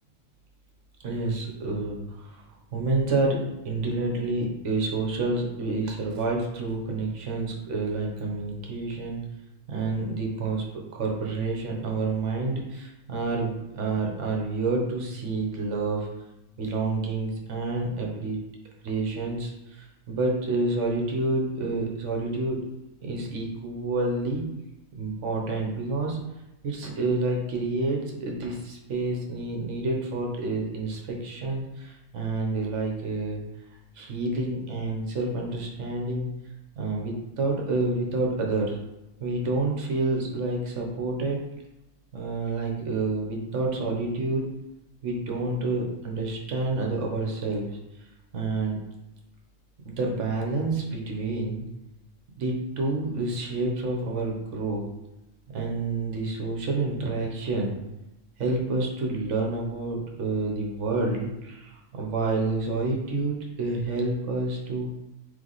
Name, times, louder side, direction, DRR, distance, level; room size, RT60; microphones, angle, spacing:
voice 1, 1.0-2.4 2.7-9.2 9.7-10.6 10.9-16.1 16.6-18.4 18.8-22.6 23.0-24.4 25.0-26.2 26.6-33.4 34.0-36.3 36.8-38.8 39.2-41.4 42.1-44.5 45.0-47.7 48.3-48.8 49.8-51.6 52.4-54.9 55.5-57.8 58.4-64.9, right 3 dB, 65° right, 0 dB, 1.1 m, -28 dB
3.4 x 3.3 x 3.9 m, 0.94 s
omnidirectional pair, 1.4 m